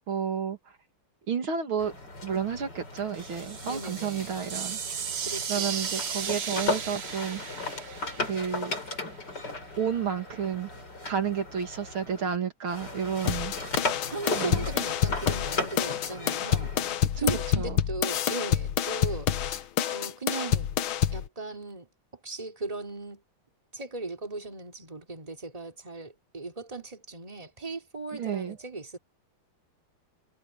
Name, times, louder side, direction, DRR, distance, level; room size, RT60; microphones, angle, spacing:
voice 1, 0.1-0.7 1.3-1.9 2.2-5.0 5.5-7.6 8.2-8.7 9.8-10.7 11.0-13.8 14.4-14.6 17.6-17.8 28.1-28.6, right 7 dB, 70° right, 3.0 m, -31 dB
sound 1, 1.8-12.4 12.7-17.0, left 2 dB, 50° left, 5.7 m, -36 dB
sound 2, 3.1-9.0, right 7 dB, 55° right, 0.7 m, -36 dB
voice 2, 3.6-4.4 5.2-5.8 14.1-16.7 17.2-20.7 21.1-21.9 22.2-23.2 23.7-29.0, right 3 dB, 15° right, 3.2 m, -37 dB
sound 3, 13.3-21.3, left 10 dB, 70° left, 1.7 m, -27 dB
omnidirectional pair, 2.4 m